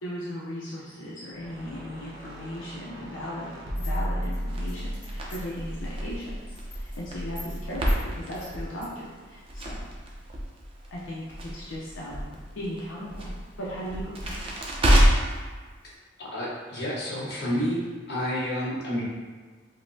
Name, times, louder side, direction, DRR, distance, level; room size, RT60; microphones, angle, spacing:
voice 1, 0.0-9.8 10.9-11.3 11.5-13.3 13.6-14.4, equal, 85° left, -6 dB, 0.6 m, -37 dB
sound 1, 1.4-6.6, equal, 70° right, 0.7 m, -35 dB
sound 2, 3.8-5.6 6.0-6.2 6.5-7.0 7.4-7.6 7.9-8.0 8.3-8.9, left 3 dB, 25° left, 1.2 m, -45 dB
Crackle, 4.5-15.4, equal, 30° right, 0.5 m, -28 dB
voice 2, 16.2-19.0, equal, 55° left, -7 dB, 1.0 m, -30 dB
5.0 x 2.1 x 2.6 m, 1.4 s
head